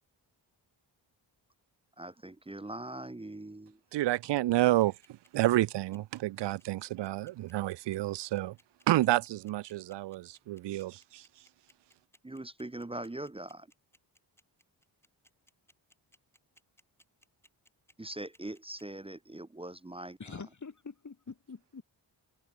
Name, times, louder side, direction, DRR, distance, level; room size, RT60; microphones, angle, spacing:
voice 1, 2.0-3.8 12.2-13.7 18.0-20.4, right 1 dB, 10° right, 0.7 m, -42 dB
voice 2, 3.9-8.6 8.9-11.3, right 15 dB, 65° right, 0.5 m, -29 dB
sound 1, 4.1-18.8, left 1 dB, 5° left, 4.4 m, -63 dB
voice 3, 20.2-21.8, left 5 dB, 40° left, 2.2 m, -45 dB
cardioid pair, 55°, 47 cm